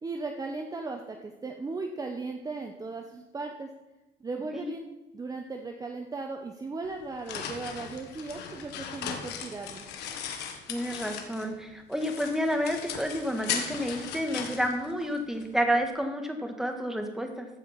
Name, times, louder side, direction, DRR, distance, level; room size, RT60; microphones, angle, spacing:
voice 1, 0.0-3.7 4.2-4.8 5.1-9.9, right 3 dB, 20° right, 3 dB, 0.9 m, -37 dB
sound 1, 6.8-11.6 11.9-15.5, left 7 dB, 85° left, 1.5 m, -38 dB
voice 2, 10.7-17.5, equal, ahead, 4 dB, 1.5 m, -30 dB
15.0 x 5.1 x 5.8 m, 1.0 s
cardioid pair, 110°, 17 cm